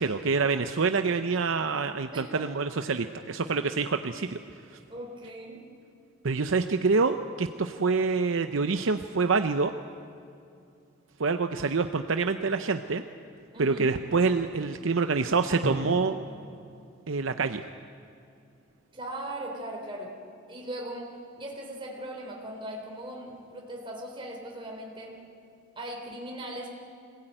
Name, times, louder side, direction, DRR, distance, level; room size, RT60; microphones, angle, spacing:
voice 1, 0.0-4.4 6.2-9.7 11.2-13.0 13.6-16.2 17.1-17.7, right 4 dB, 75° right, 8 dB, 0.7 m, -26 dB
voice 2, 4.9-5.6 13.5-13.9 18.9-20.1 20.5-21.1 21.4-25.2 25.8-26.7, right 1 dB, 25° right, -1 dB, 3.5 m, -39 dB
Drum, 15.6-18.3, equal, 55° right, 2.1 m, -39 dB
25.0 x 17.0 x 9.0 m, 2.5 s
head